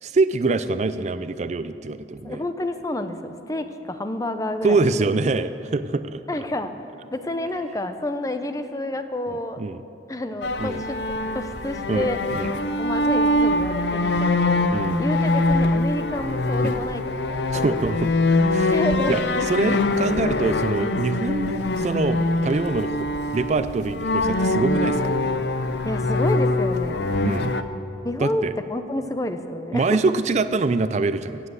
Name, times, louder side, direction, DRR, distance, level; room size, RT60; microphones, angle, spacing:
voice 1, 0.0-2.4 4.6-6.2 9.6-9.8 10.6-10.8 11.9-12.1 12.3-12.5 14.7-15.0 16.6-16.8 17.5-18.1 18.5-18.8 19.1-19.2 19.5-23.0 23.3-25.1 27.2-27.5 28.2-28.5 29.7-31.5, right 3 dB, 40° right, 12 dB, 0.4 m, -24 dB
voice 2, 2.2-5.1 6.3-6.7 7.1-9.6 10.1-11.0 11.3-12.2 12.8-14.7 15.0-17.0 17.3-17.8 18.7-19.2 25.8-27.1 28.0-30.0, left 1 dB, 20° left, 9 dB, 0.7 m, -29 dB
sound 1, 10.4-27.6, left 2 dB, 75° left, 0.7 m, -23 dB
16.0 x 7.6 x 8.1 m, 3.0 s
head